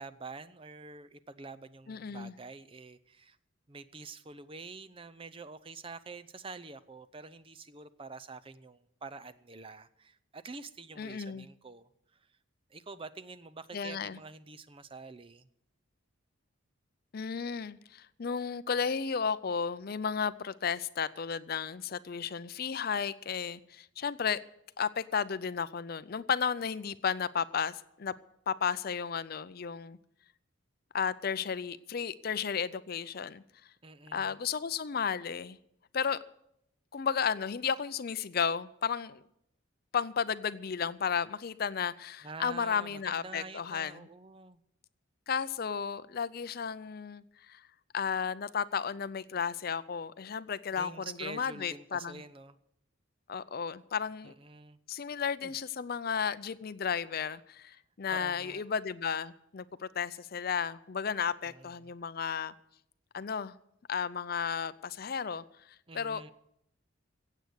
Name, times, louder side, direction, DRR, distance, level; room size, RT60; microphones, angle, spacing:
voice 1, 0.0-3.4 3.7-11.9 12.7-15.5 33.8-34.4 42.2-44.6 50.8-52.6 54.2-54.8 55.4-55.5 58.1-58.6 61.4-61.9 65.9-66.3, right 3 dB, 25° right, 13 dB, 0.5 m, -47 dB
voice 2, 1.9-2.3 11.0-11.5 13.7-14.2 17.1-24.4 24.8-28.1 28.5-30.0 30.9-33.4 34.1-35.6 35.9-36.2 36.9-39.2 39.9-44.1 45.3-47.6 47.9-52.2 53.3-54.3 54.9-62.5 63.1-63.5 63.9-65.4 65.9-66.2, left 6 dB, 45° left, 15 dB, 0.5 m, -33 dB
15.5 x 8.3 x 8.0 m, 0.76 s
head